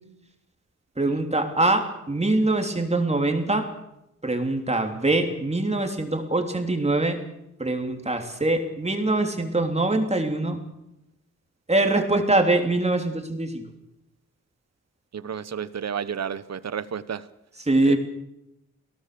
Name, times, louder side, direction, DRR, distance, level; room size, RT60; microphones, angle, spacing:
voice 1, 1.0-3.7 4.2-7.2 7.6-10.6 11.7-13.6 17.6-18.0, right 2 dB, 20° right, 4 dB, 3.5 m, -23 dB
voice 2, 15.1-17.2 17.9-18.0, right 7 dB, 55° right, 16 dB, 1.1 m, -31 dB
28.0 x 18.0 x 7.0 m, 0.87 s
cardioid pair, 80°, 31 cm